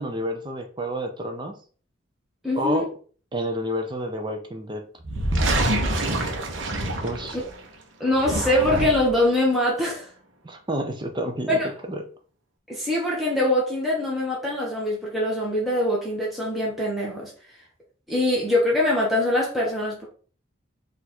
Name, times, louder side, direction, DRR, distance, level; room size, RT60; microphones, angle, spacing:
voice 1, 0.0-1.5 2.5-2.9 3.3-4.8 7.0-7.4 10.4-11.6 11.9-12.0, equal, 25° right, 5 dB, 0.5 m, -29 dB
voice 2, 2.4-2.8 7.3-7.4 8.0-10.1 11.5-11.7 12.7-17.3 18.1-20.1, left 1 dB, ahead, -5 dB, 1.0 m, -23 dB
sound 1, 5.0-7.6 8.1-9.2, right 1 dB, 80° right, 0.8 m, -26 dB
4.3 x 2.6 x 4.2 m, 0.41 s
head